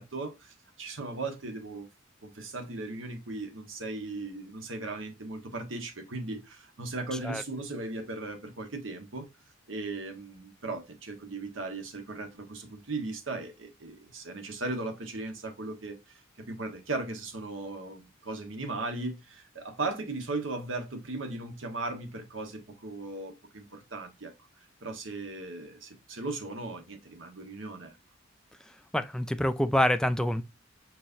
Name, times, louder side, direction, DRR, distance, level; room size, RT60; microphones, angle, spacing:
voice 1, 0.0-1.9 2.2-9.3 9.7-24.3 24.8-28.0, right 2 dB, 80° right, 1.3 m, -37 dB
voice 2, 28.9-30.4, left 1 dB, 5° left, 0.3 m, -26 dB
4.6 x 4.1 x 2.6 m
head